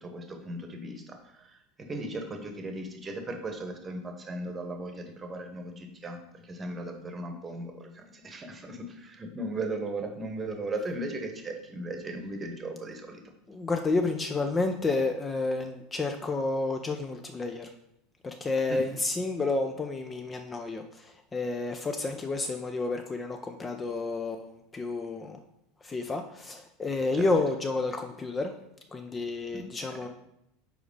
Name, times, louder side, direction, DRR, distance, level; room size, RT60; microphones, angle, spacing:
voice 1, 0.0-13.2 18.7-18.8 27.1-27.3 29.5-29.6, right 2 dB, 20° right, 5 dB, 1.0 m, -37 dB
voice 2, 13.5-17.7 18.2-25.4 25.8-28.5 28.9-30.1, left 3 dB, 20° left, 5 dB, 0.5 m, -30 dB
5.0 x 4.8 x 4.7 m, 0.79 s
figure-of-eight pair, 75°, 0 cm